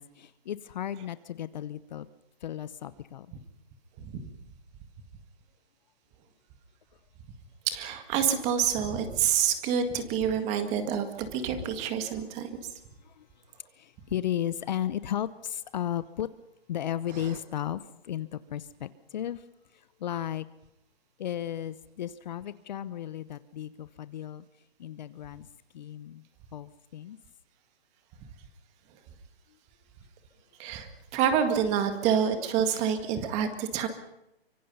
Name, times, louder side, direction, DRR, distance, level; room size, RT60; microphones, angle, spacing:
voice 1, 0.0-2.1 2.4-3.3 13.0-13.2 13.8-16.3 16.7-19.4 20.0-20.4 21.2-24.4 24.8-25.5 25.7-26.2 26.5-27.2, left 11 dB, 45° left, 15 dB, 0.8 m, -34 dB
voice 2, 7.7-12.5 17.1-17.4 30.6-33.9, right 8 dB, 20° right, 8 dB, 1.9 m, -27 dB
24.5 x 24.0 x 5.6 m, 0.87 s
hypercardioid pair, 155°, 31 cm